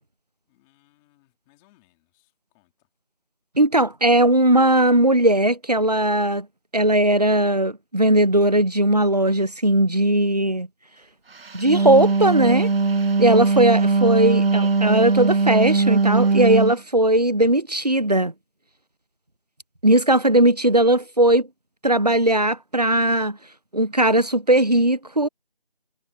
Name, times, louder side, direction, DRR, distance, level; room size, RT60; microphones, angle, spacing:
voice 1, 0.5-2.9, left 18 dB, ahead, 2.1 m, -64 dB
voice 2, 3.6-6.5 6.7-10.7 11.5-12.7 13.2-18.3 19.8-21.5 21.8-23.4 23.7-25.3, right 1 dB, 45° right, 0.8 m, -18 dB
Wind instrument woodwind instrument, 11.5-16.8, right 4 dB, 80° right, 0.6 m, -20 dB
figure-of-eight pair, 170°, 29 cm